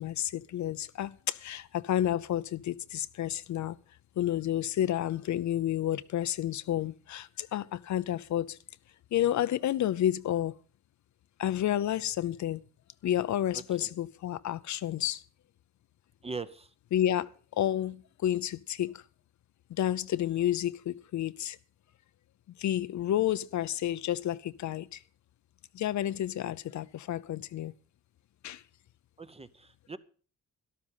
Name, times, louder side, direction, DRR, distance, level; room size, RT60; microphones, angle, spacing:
voice 1, 0.0-3.8 4.2-8.6 9.1-10.5 11.4-12.6 13.0-15.2 16.9-19.0 19.8-21.6 22.6-25.0 25.7-27.7 28.4-28.6, left 11 dB, 65° left, 0.6 m, -30 dB
voice 2, 13.5-13.9 16.2-16.7 29.2-30.0, right 4 dB, 20° right, 0.8 m, -41 dB
12.5 x 12.0 x 5.6 m
cardioid pair, 115°, 31 cm